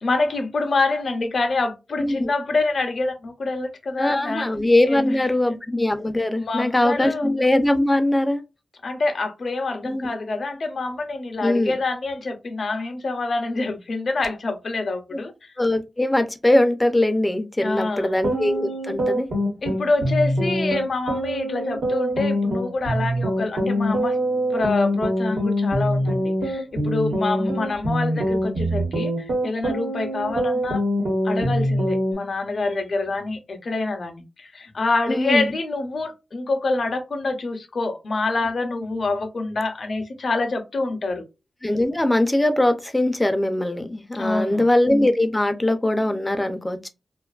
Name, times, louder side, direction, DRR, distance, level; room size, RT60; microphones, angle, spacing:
voice 1, 0.0-4.5 4.9-5.6 6.4-7.3 8.8-15.3 17.6-18.2 19.6-24.2 24.5-29.1 29.4-30.8 31.2-41.2 44.2-44.7, left 3 dB, 60° left, 0.6 m, -26 dB
voice 2, 2.0-2.3 4.0-8.4 9.8-10.1 11.4-11.7 15.6-19.3 35.1-35.5 41.6-46.9, left 1 dB, 15° left, 0.4 m, -21 dB
sound 1, 18.1-32.1, equal, 75° right, 1.2 m, -24 dB
2.5 x 2.3 x 2.3 m
wide cardioid pair, 95°, 0 cm